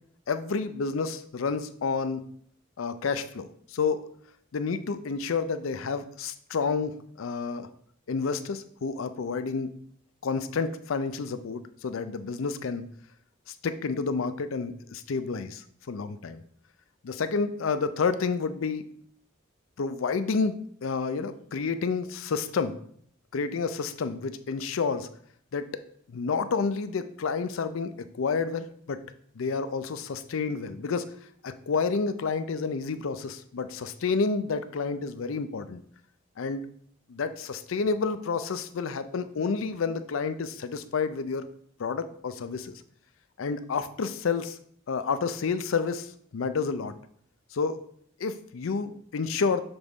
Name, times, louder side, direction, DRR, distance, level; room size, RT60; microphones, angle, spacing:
voice 1, 0.3-2.2 2.8-4.1 4.5-7.7 8.1-9.7 10.2-12.8 13.5-16.4 17.0-19.0 19.8-22.8 23.3-25.1 25.5-25.7 26.1-29.0 29.4-31.1 31.4-35.8 36.4-36.6 37.1-41.5 41.8-42.8 43.4-44.6 44.9-46.9 47.5-47.8 48.2-49.6, left 5 dB, 80° left, 11 dB, 0.5 m, -30 dB
6.9 x 3.7 x 3.9 m, 0.62 s
head